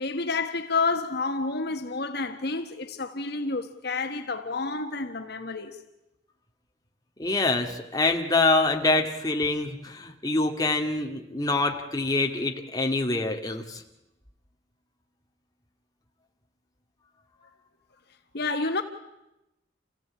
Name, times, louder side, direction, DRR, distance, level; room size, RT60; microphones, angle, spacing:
voice 1, 0.0-5.8 18.3-18.8, left 3 dB, 60° left, 1.4 m, -29 dB
voice 2, 7.2-13.8, left 2 dB, 20° left, 2.0 m, -25 dB
28.0 x 15.5 x 8.7 m
head